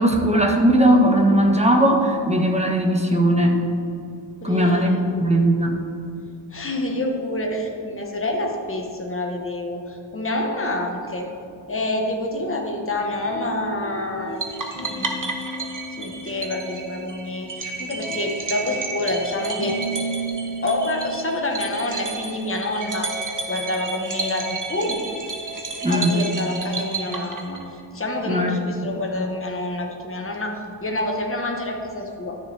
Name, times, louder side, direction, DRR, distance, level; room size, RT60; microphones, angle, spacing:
voice 1, 0.0-3.6 4.4-5.8 25.8-26.1 28.3-28.5, right 1 dB, 15° right, 1 dB, 1.3 m, -18 dB
voice 2, 4.4-5.1 6.5-11.3 11.7-14.4 14.8-15.3 16.0-19.8 20.6-23.1 23.5-25.0 25.9-32.4, left 1 dB, 30° left, 1 dB, 1.3 m, -27 dB
sound 1, 13.0-14.4 14.8-17.5 17.8-22.1, right 2 dB, 85° right, 2.0 m, -34 dB
sound 2, 14.4-27.8, right 3 dB, 45° right, 1.2 m, -32 dB
12.5 x 6.9 x 3.5 m, 2.5 s
wide cardioid pair, 65°, 45 cm